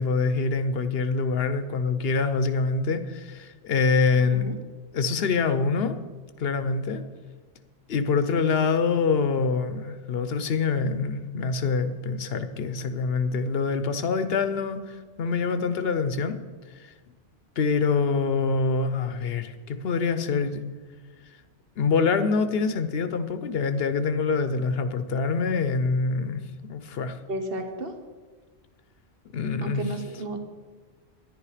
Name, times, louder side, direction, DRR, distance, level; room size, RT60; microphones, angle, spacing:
voice 1, 0.0-4.5 4.9-6.0 6.4-7.0 7.9-16.4 16.8-16.9 17.6-20.6 21.8-27.2 29.3-29.9, left 4 dB, 65° left, 11 dB, 0.9 m, -25 dB
voice 2, 27.3-27.9 29.6-30.4, right 1 dB, 60° right, 5 dB, 1.4 m, -32 dB
10.5 x 10.0 x 4.9 m, 1.4 s
omnidirectional pair, 1.1 m